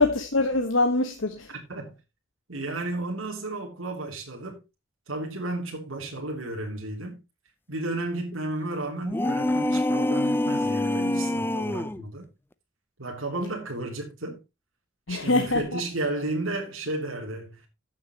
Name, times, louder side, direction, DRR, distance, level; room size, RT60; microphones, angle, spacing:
voice 1, 0.0-1.5 15.1-15.8, left 2 dB, 75° left, 1.4 m, -24 dB
voice 2, 1.5-1.9 2.5-4.6 5.1-7.2 7.7-12.3 13.0-14.4 15.1-17.6, right 2 dB, 75° right, 3.2 m, -33 dB
sound 1, 9.0-12.0, left 1 dB, 10° left, 0.5 m, -25 dB
15.0 x 7.4 x 3.0 m
head